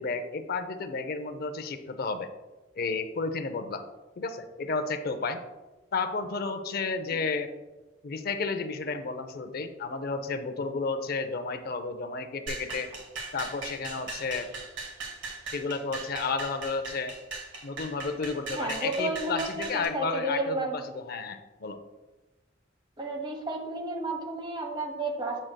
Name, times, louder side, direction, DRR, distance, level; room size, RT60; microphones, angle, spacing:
voice 1, 0.0-2.3 2.8-3.8 4.2-5.4 5.9-7.5 8.0-12.9 13.3-14.5 15.5-17.1 17.6-21.8, left 4 dB, 55° left, 9 dB, 0.6 m, -32 dB
sound 1, 12.5-19.8, right 3 dB, 85° right, 1.6 m, -39 dB
voice 2, 18.5-20.8 23.0-25.4, right 2 dB, 25° right, 2 dB, 1.1 m, -32 dB
7.4 x 6.5 x 2.2 m, 1.1 s
head